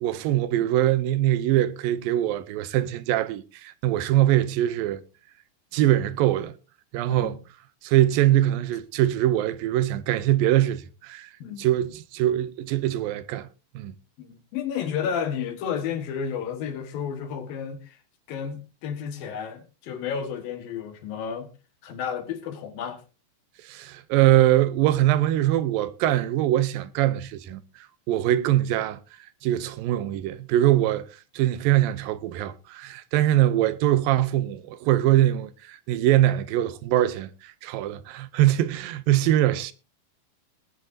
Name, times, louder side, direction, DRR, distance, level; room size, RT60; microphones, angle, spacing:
voice 1, 0.0-5.0 5.7-6.5 6.9-7.4 7.8-11.3 11.6-13.5 13.8-14.0 23.6-29.0 29.4-31.1 31.3-39.7, right 13 dB, 80° right, 2.5 m, -23 dB
voice 2, 14.2-18.0 18.3-21.5 21.8-23.0, left 7 dB, 80° left, 3.4 m, -32 dB
19.5 x 10.5 x 2.7 m
omnidirectional pair, 4.1 m